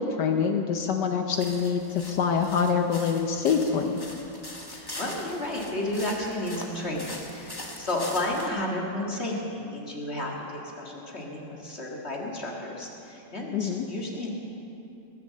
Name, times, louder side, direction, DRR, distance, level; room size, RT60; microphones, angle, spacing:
voice 1, 0.0-4.0 13.5-13.8, left 6 dB, 65° left, 5 dB, 1.1 m, -25 dB
sound 1, 1.3-8.5, left 1 dB, 15° left, 0.8 m, -42 dB
voice 2, 4.7-14.3, left 1 dB, 30° left, -2 dB, 1.9 m, -32 dB
19.5 x 7.1 x 7.4 m, 2.8 s
omnidirectional pair, 2.3 m